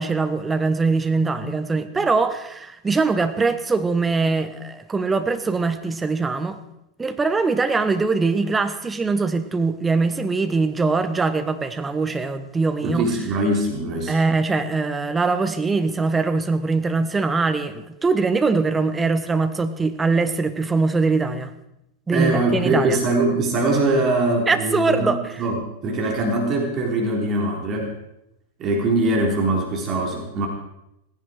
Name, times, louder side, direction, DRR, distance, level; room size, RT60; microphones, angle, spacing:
voice 1, 0.0-6.6 7.0-13.1 14.1-21.5 22.1-23.0 24.5-25.4, right 4 dB, 15° right, 9 dB, 1.3 m, -22 dB
voice 2, 12.8-14.2 22.1-27.9 28.6-30.5, right 2 dB, 30° right, 0 dB, 3.8 m, -22 dB
17.5 x 16.0 x 4.7 m, 0.84 s
figure-of-eight pair, 90°, 0 cm